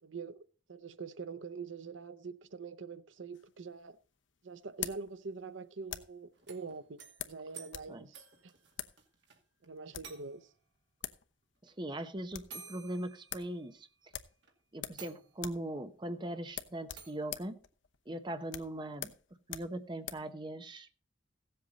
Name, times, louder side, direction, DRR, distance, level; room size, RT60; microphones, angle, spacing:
voice 1, 0.0-4.0 4.4-7.0 7.3-8.5 9.6-10.5, right 4 dB, 80° right, 0.7 m, -44 dB
sound 1, 3.3-6.3 7.2-7.9 8.2-8.3 8.7-9.0 9.7-10.2 10.7-10.8 11.0-11.3 11.6-11.7 12.0-12.6 12.9-13.0 13.3-13.5 14.1-15.1 15.3-15.7 16.0-16.1 16.5-20.3, left 10 dB, 75° left, 0.9 m, -44 dB
sound 2, 6.3-9.4 9.6-9.7 10.0-10.6 11.7-11.8 12.5-13.9 14.4-14.5 15.0-15.7 17.0-17.3, right 5 dB, 65° right, 2.3 m, -52 dB
voice 2, 11.6-13.9 14.7-17.6 18.1-19.1 19.5-20.9, right 1 dB, 25° right, 0.9 m, -40 dB
16.0 x 7.8 x 4.1 m
head